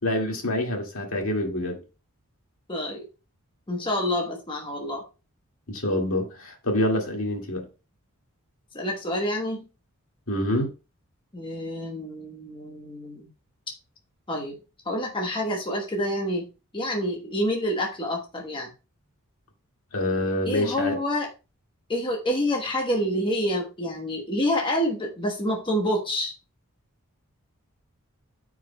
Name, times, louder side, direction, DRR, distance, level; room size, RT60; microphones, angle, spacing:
voice 1, 0.0-1.8 5.7-7.7 10.3-10.7 19.9-21.0, left 1 dB, 65° left, 2.0 m, -26 dB
voice 2, 2.7-3.0 3.7-5.0 8.7-9.6 11.3-13.3 14.3-14.5 14.8-16.4 16.7-18.7 20.5-21.3 21.9-26.3, equal, 20° left, 1.1 m, -27 dB
13.5 x 4.8 x 2.2 m
head